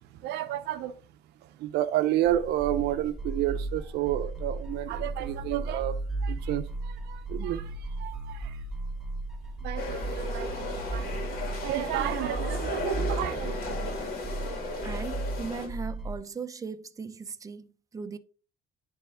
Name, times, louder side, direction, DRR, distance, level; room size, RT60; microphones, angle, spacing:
voice 1, 0.1-1.0 1.4-6.0 6.2-8.6 9.6-10.5 10.9-11.0 11.6-13.6, right 13 dB, 85° right, 0.7 m, -30 dB
sound 1, 2.3-16.2, right 2 dB, ahead, 1.0 m, -35 dB
sound 2, 9.8-15.7, left 2 dB, 65° left, 2.7 m, -35 dB
voice 2, 14.8-17.7 17.9-18.2, right 5 dB, 20° right, 0.6 m, -38 dB
10.0 x 3.5 x 3.5 m
cardioid pair, 110°, 17 cm